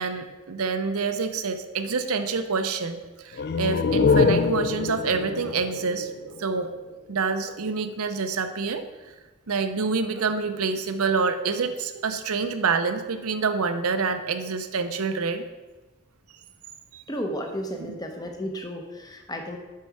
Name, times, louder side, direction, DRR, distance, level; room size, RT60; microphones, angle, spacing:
voice 1, 0.0-6.7 7.1-9.1 9.5-15.4 16.9-17.0 17.8-18.0, right 4 dB, 85° right, 8 dB, 0.6 m, -27 dB
sound 1, 3.3-6.9, left 5 dB, 45° left, 0.3 m, -24 dB
voice 2, 17.1-19.6, equal, 15° left, 3 dB, 0.8 m, -33 dB
7.5 x 5.6 x 4.7 m, 1.2 s
head